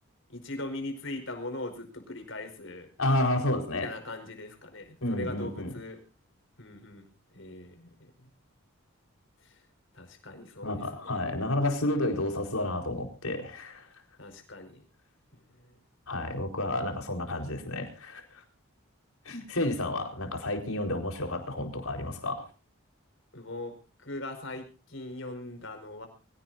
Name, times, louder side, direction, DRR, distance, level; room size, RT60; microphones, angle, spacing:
voice 1, 0.3-2.9 3.8-6.0 6.6-7.1 7.3-8.3 9.4-9.6 9.9-11.1 14.2-14.8 15.3-15.8 23.3-23.7 24.0-26.1, left 2 dB, 60° left, 6 dB, 5.2 m, -40 dB
voice 2, 3.0-3.9 5.0-5.7 10.6-13.8 16.1-18.2 19.3-22.5, left 1 dB, 85° left, 4 dB, 4.5 m, -30 dB
24.0 x 17.0 x 2.7 m, 0.33 s
head